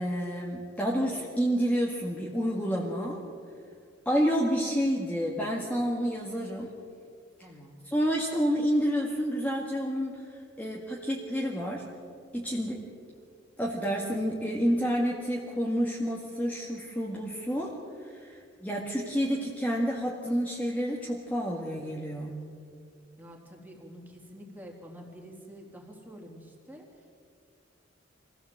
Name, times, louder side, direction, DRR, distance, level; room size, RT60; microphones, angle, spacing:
voice 1, 0.0-3.2 4.1-6.7 7.8-11.9 12.3-12.8 13.6-22.4, equal, 10° left, -3 dB, 2.0 m, -29 dB
voice 2, 7.4-7.8 23.2-27.1, equal, 10° right, 0 dB, 3.4 m, -48 dB
24.5 x 16.0 x 7.9 m, 2.2 s
head